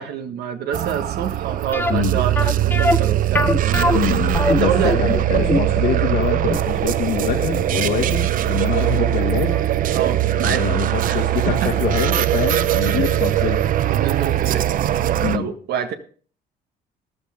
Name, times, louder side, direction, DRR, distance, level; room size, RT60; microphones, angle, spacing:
voice 1, 0.0-4.2 4.4-4.9 9.9-10.6 11.1-11.7 12.8-13.1 13.9-14.6 15.3-15.9, right 8 dB, 70° right, 8 dB, 1.4 m, -27 dB
sound 1, 0.7-15.4, right 13 dB, 55° right, 0.6 m, -21 dB
sound 2, 1.7-8.6 8.9-9.0 9.5-9.7 9.9-10.0, left 2 dB, 10° left, 0.9 m, -23 dB
voice 2, 3.9-4.7 5.0-9.6 10.3-13.7 15.2-15.5, left 8 dB, 80° left, -1 dB, 1.9 m, -25 dB
14.0 x 11.5 x 3.6 m, 0.42 s
cardioid pair, 110°, 17 cm